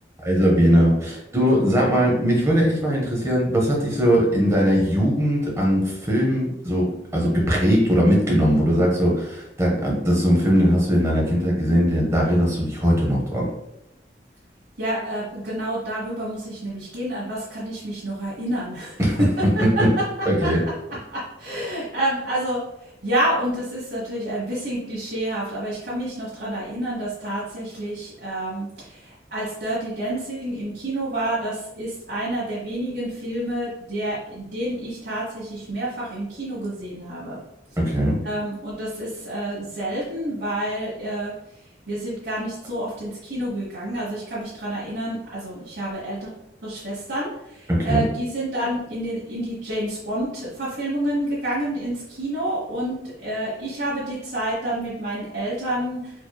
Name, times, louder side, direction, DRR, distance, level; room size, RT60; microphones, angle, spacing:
voice 1, 0.2-13.4 19.0-19.3 19.6-19.9 20.2-20.6 37.8-38.2 47.7-48.0, equal, 15° right, -3 dB, 0.9 m, -20 dB
voice 2, 14.8-19.4 19.7-19.8 20.4-20.5 21.1-37.4 38.2-41.3 41.9-46.3 46.6-56.1, right 1 dB, 80° right, -9 dB, 1.3 m, -28 dB
4.4 x 3.0 x 2.3 m, 0.83 s
head